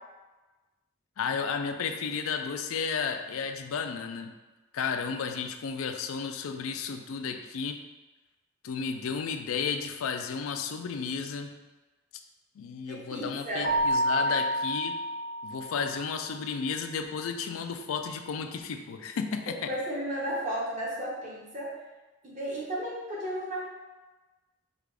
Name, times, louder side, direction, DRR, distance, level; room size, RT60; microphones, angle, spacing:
voice 1, 1.2-4.3 4.7-7.8 8.6-11.6 12.6-15.0 15.4-19.7, left 6 dB, 75° left, 6 dB, 0.4 m, -33 dB
voice 2, 12.9-13.7 14.3-14.4 19.5-21.7 22.2-23.6, equal, 35° right, -6 dB, 1.1 m, -34 dB
Keyboard (musical), 13.6-16.1, equal, 65° right, 0.7 m, -29 dB
4.8 x 2.5 x 3.3 m, 1.2 s
head